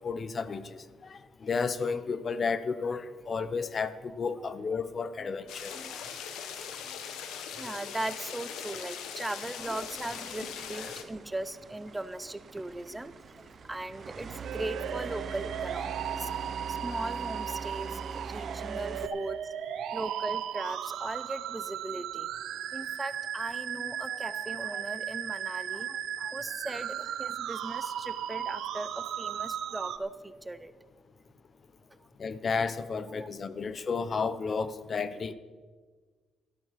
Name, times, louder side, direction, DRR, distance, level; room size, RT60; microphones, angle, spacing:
voice 1, 0.0-5.8 32.2-35.3, left 5 dB, 45° left, 14 dB, 0.8 m, -32 dB
sound 1, 5.5-11.0, left 7 dB, 85° left, 1.3 m, -40 dB
voice 2, 5.7-6.2 6.8-7.2 7.5-19.5 19.9-22.3 22.7-30.7 31.9-32.0 33.2-33.3, right 2 dB, 15° right, 14 dB, 0.6 m, -39 dB
sound 2, 9.6-19.1, right 5 dB, 50° right, 0.8 m, -42 dB
sound 3, 14.4-30.0, right 10 dB, 80° right, 0.7 m, -36 dB
13.0 x 12.5 x 5.8 m, 1.5 s
cardioid pair, 90°, 0 cm